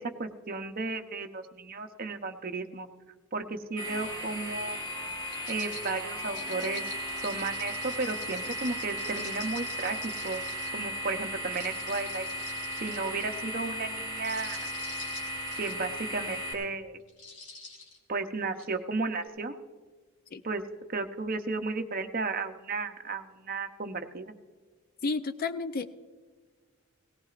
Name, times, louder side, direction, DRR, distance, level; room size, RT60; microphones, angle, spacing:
voice 1, 0.0-2.9 3.3-4.8 5.5-6.8 7.2-10.0 10.2-10.4 10.7-12.3 12.8-14.7 15.6-17.0 18.1-19.6 20.4-20.6 20.9-24.3, right 3 dB, 40° right, 7 dB, 0.7 m, -34 dB
sound 1, 3.8-16.5, equal, 20° left, 2.4 m, -36 dB
sound 2, 5.3-10.8 11.4-13.4 14.1-15.8 16.3-16.6 17.1-18.0 18.6-18.7, left 3 dB, 85° left, 2.7 m, -47 dB
voice 2, 25.0-25.9, left 4 dB, 40° left, 11 dB, 0.4 m, -31 dB
18.0 x 17.5 x 2.5 m, 1.5 s
head